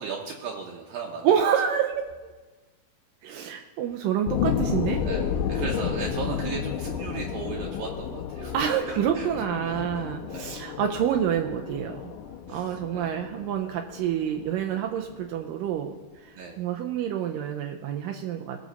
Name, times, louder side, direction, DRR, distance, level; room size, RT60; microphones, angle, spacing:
voice 1, 0.0-1.3 5.0-8.6 9.1-9.8 10.3-10.6 12.5-13.2 16.4-16.6, right 5 dB, 75° right, 0 dB, 2.4 m, -36 dB
voice 2, 1.2-2.3 3.2-5.0 8.5-12.1 12.5-15.9 16.2-18.6, right 9 dB, 90° right, 4 dB, 1.9 m, -28 dB
sound 1, 4.3-15.3 15.7-15.8, left 7 dB, 75° left, 2.0 m, -32 dB
18.5 x 6.4 x 4.0 m, 1.2 s
omnidirectional pair, 4.6 m